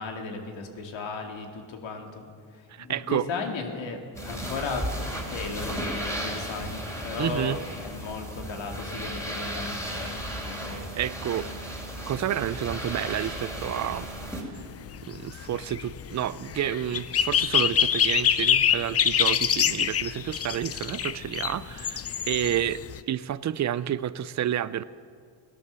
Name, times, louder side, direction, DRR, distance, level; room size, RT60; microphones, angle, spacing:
voice 1, 0.0-2.3 2.5-10.9, left 4 dB, 75° left, 3 dB, 2.2 m, -36 dB
voice 2, 2.7-3.3 7.2-7.6 10.7-11.5 12.0-14.1 15.1-24.8, right 10 dB, 40° right, 16 dB, 0.5 m, -30 dB
sound 1, 4.1-14.4, equal, 5° left, 2.8 m, -35 dB
sound 2, 14.6-23.0, left 8 dB, 35° left, 0.4 m, -26 dB
18.0 x 11.0 x 6.9 m, 2.1 s
cardioid pair, 125°, 46 cm